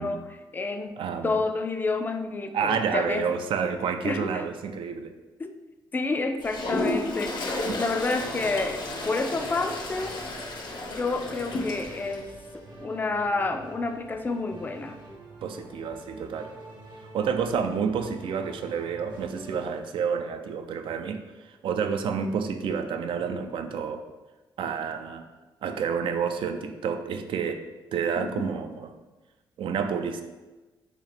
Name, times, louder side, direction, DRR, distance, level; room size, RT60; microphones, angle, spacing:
voice 1, 0.0-3.3 4.0-4.5 5.4-5.5 5.9-10.2 10.9-15.0 28.2-28.4, left 3 dB, 20° left, 6 dB, 0.3 m, -30 dB
voice 2, 1.0-1.4 2.5-5.1 7.7-7.8 15.4-16.5 17.1-24.0 24.6-25.3 25.6-27.6 27.9-28.9 29.6-30.2, right 6 dB, 70° right, 7 dB, 0.3 m, -29 dB
Toilet flush, 6.4-12.2, left 2 dB, 55° left, 0.7 m, -32 dB
sound 1, 8.2-19.7, right 2 dB, 55° right, 0.9 m, -46 dB
2.9 x 2.8 x 4.2 m, 1.2 s
cardioid pair, 85°, 9 cm